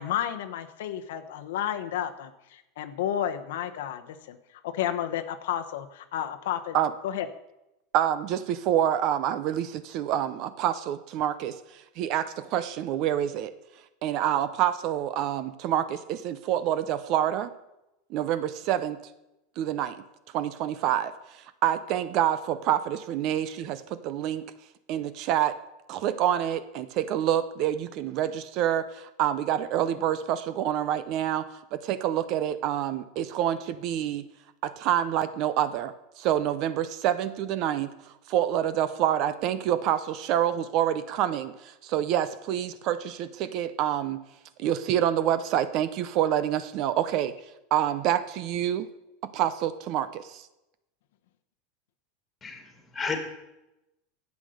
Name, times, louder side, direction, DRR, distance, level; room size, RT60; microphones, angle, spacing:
voice 1, 0.0-4.4 4.6-6.8 7.0-7.3, left 10 dB, 75° left, 8 dB, 1.0 m, -31 dB
voice 2, 7.9-13.5 14.0-17.5 18.1-19.0 19.6-20.0 20.3-24.4 24.9-25.6 25.9-31.5 31.7-34.2 34.6-44.2 44.6-47.3 47.7-48.9 49.3-50.5, right 11 dB, 40° right, 14 dB, 0.6 m, -27 dB
voice 3, 52.4-53.2, left 5 dB, 15° left, 5 dB, 1.9 m, -33 dB
11.5 x 8.3 x 6.5 m, 0.93 s
supercardioid pair, 165°, 0 cm